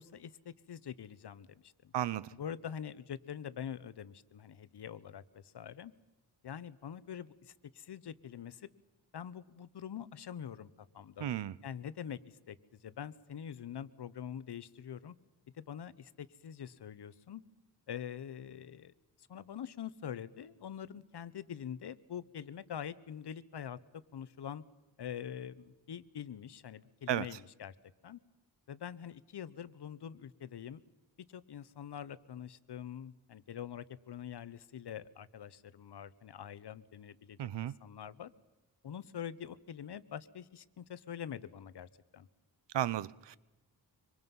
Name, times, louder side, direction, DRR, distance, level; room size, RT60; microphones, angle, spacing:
voice 1, 0.0-1.9 2.3-5.9 6.4-8.7 9.1-11.3 11.6-15.1 15.5-17.4 17.9-23.8 24.1-24.6 25.0-27.7 28.0-28.2 28.7-30.8 31.3-38.3 38.8-42.3, left 9 dB, 70° left, 16 dB, 1.1 m, -45 dB
voice 2, 1.9-2.3 11.2-11.5 27.1-27.2 37.4-37.7 42.7-43.4, right 12 dB, 80° right, 21 dB, 0.8 m, -33 dB
25.5 x 25.0 x 5.6 m, 1.1 s
wide cardioid pair, 105°, 41 cm